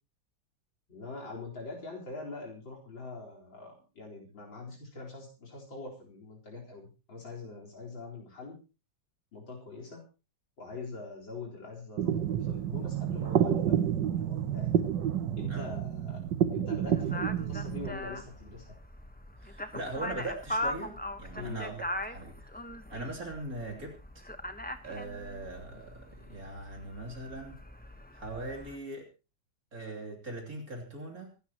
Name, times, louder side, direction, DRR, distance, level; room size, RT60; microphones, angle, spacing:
voice 1, 0.9-8.6 9.3-10.0 10.6-14.8 15.4-16.2 16.5-18.8 21.3-21.6, left 3 dB, 85° left, -2 dB, 5.1 m, -43 dB
sound 1, 12.0-17.9, right 9 dB, 70° right, 1.6 m, -29 dB
sound 2, 16.8-28.8, left 1 dB, 5° left, 0.8 m, -40 dB
voice 2, 19.4-22.5 22.9-24.3 24.8-27.6 28.1-29.1 29.7-31.4, right 2 dB, 50° right, 1 dB, 3.6 m, -40 dB
25.0 x 12.5 x 3.0 m, 0.32 s
omnidirectional pair, 2.0 m